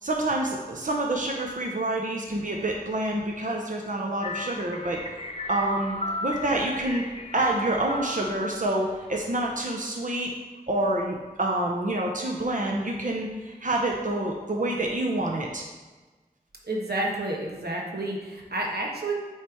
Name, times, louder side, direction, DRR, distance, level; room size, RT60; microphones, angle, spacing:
voice 1, 0.0-5.0 5.5-7.1 7.3-10.3 10.7-15.7, right 1 dB, 55° right, 0 dB, 0.8 m, -27 dB
sound 1, 4.2-9.6, left 1 dB, 40° left, 0.7 m, -36 dB
voice 2, 16.7-19.1, right 2 dB, 90° right, -2 dB, 1.1 m, -30 dB
8.6 x 3.3 x 4.5 m, 1.3 s
wide cardioid pair, 40°, 16 cm